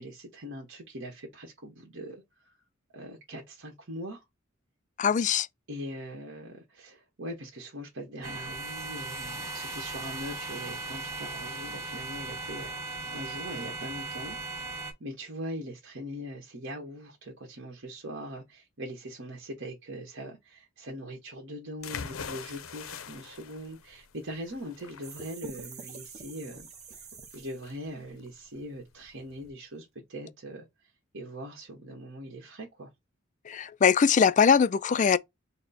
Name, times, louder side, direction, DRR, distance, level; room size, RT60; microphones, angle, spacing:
voice 1, 0.0-2.6 2.9-4.2 5.7-14.7 15.0-27.1 27.3-32.9, equal, 60° right, 1.3 m, -41 dB
voice 2, 5.0-5.5 33.4-35.2, left 6 dB, 35° left, 0.4 m, -22 dB
sound 1, 8.2-14.9, right 3 dB, 15° right, 1.6 m, -38 dB
sound 2, 21.8-29.5, left 6 dB, 80° left, 0.7 m, -44 dB
sound 3, 25.0-27.8, right 5 dB, 35° right, 0.9 m, -46 dB
4.2 x 2.1 x 4.0 m
head